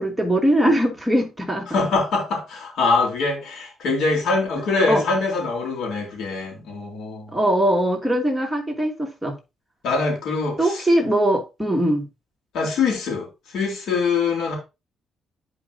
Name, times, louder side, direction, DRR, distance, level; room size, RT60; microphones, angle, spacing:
voice 1, 0.0-1.7 4.9-5.0 7.3-9.4 10.6-12.1, right 1 dB, 5° right, 2.5 m, -21 dB
voice 2, 1.7-7.4 9.8-10.8 12.5-13.3 13.5-14.6, left 3 dB, 75° left, 3.6 m, -23 dB
10.5 x 5.0 x 2.8 m
cardioid pair, 90°, 0 cm